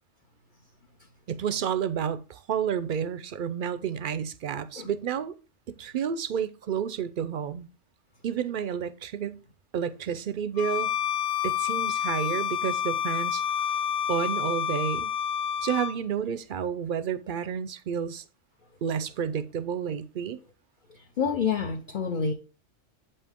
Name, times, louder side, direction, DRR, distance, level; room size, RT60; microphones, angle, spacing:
voice 1, 1.3-5.3 5.7-7.7 8.2-9.4 9.7-11.0 11.4-13.4 14.1-15.2 15.6-18.2 18.8-20.4, right 8 dB, 55° right, 0.6 m, -30 dB
Bowed string instrument, 10.6-16.0, left 9 dB, 85° left, 1.0 m, -28 dB
voice 2, 21.2-22.3, left 6 dB, 50° left, 0.8 m, -27 dB
8.0 x 5.5 x 3.6 m
omnidirectional pair, 1.3 m